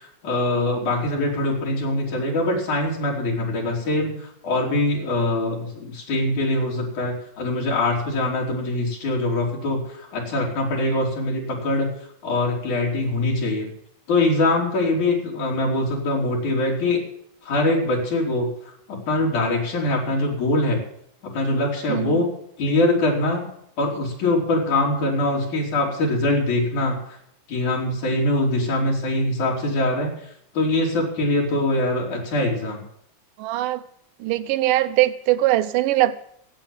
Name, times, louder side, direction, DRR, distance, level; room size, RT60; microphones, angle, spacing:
voice 1, 0.0-11.9 12.2-13.7 14.1-17.0 17.4-18.5 18.9-20.8 21.3-22.3 22.6-23.5 23.8-27.2 27.5-30.1 30.5-32.8, left 2 dB, 65° left, -2 dB, 4.9 m, -23 dB
voice 2, 21.9-22.2 33.4-33.8 34.2-36.2, right 15 dB, 85° right, 9 dB, 2.3 m, -21 dB
16.5 x 8.1 x 7.3 m, 0.70 s
omnidirectional pair, 3.7 m